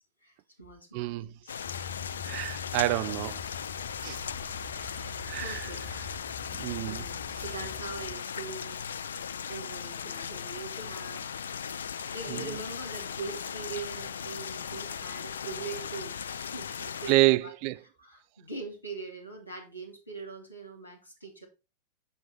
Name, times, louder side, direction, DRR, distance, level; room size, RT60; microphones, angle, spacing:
voice 1, 0.2-1.8 4.7-5.9 6.7-8.8 9.5-11.6 12.1-17.5 17.8-21.5, right 3 dB, 85° left, 2.6 m, -42 dB
voice 2, 0.9-1.3 2.2-3.4 4.0-4.2 5.3-5.7 6.6-7.0 17.1-17.8, right 19 dB, 45° right, 0.4 m, -27 dB
sound 1, 1.5-17.1, left 7 dB, 65° left, 0.4 m, -38 dB
sound 2, 1.6-8.1, left 5 dB, 50° left, 3.2 m, -44 dB
7.1 x 6.1 x 4.4 m
figure-of-eight pair, 90°, 0 cm